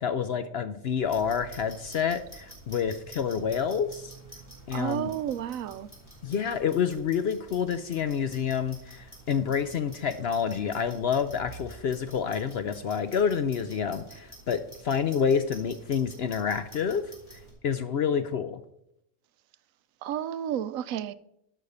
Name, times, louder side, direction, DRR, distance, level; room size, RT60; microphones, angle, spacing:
voice 1, 0.0-4.1 4.7-5.1 6.2-17.0 17.6-18.6, left 7 dB, 60° left, 0.7 m, -28 dB
Clock, 1.0-17.5, right 2 dB, 10° left, 4.5 m, -49 dB
voice 2, 4.7-5.9 20.0-21.1, right 10 dB, 75° right, 1.0 m, -31 dB
11.5 x 6.4 x 5.4 m
omnidirectional pair, 1.5 m